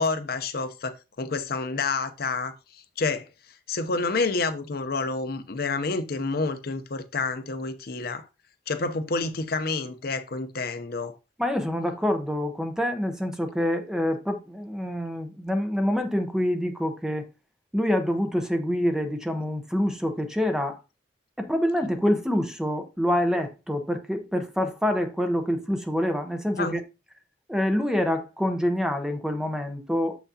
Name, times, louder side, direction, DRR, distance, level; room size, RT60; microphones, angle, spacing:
voice 1, 0.0-3.3 3.7-8.3 8.7-11.2 26.6-26.8, left 3 dB, 60° left, 0.7 m, -29 dB
voice 2, 11.4-17.3 17.7-20.8 21.4-26.8 27.5-30.2, equal, 5° right, 0.8 m, -26 dB
6.9 x 6.0 x 2.8 m
head